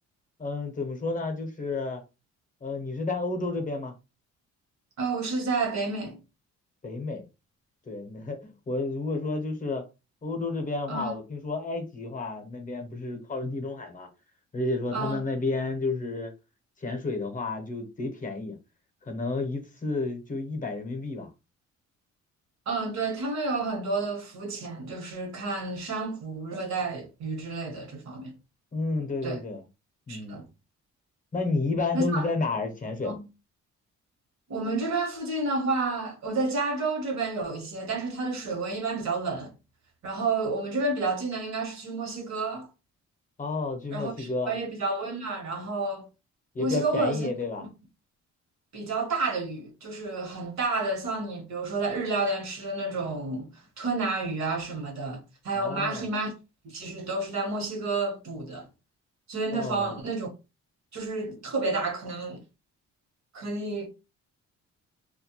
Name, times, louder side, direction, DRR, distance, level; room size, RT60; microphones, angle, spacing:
voice 1, 0.4-2.0 2.6-3.9 6.8-7.2 7.9-9.9 10.2-14.1 14.5-16.3 16.8-18.6 19.1-21.3 28.7-29.6 30.1-30.4 31.3-33.2 43.4-44.6 46.5-47.6 55.5-56.0 59.5-60.0, left 3 dB, 25° left, 0.7 m, -31 dB
voice 2, 5.0-6.2 10.9-11.1 14.9-15.2 22.7-28.3 29.2-29.4 30.1-30.5 31.9-32.3 33.0-33.2 34.5-39.5 40.0-42.7 43.9-46.1 46.6-47.3 47.6-47.7 48.7-53.5 53.8-55.2 55.4-56.3 56.6-58.7 59.3-60.3 60.9-62.4 63.3-63.9, right 3 dB, 65° right, 1.0 m, -30 dB
2.3 x 2.0 x 2.9 m
cardioid pair, 90°, 30 cm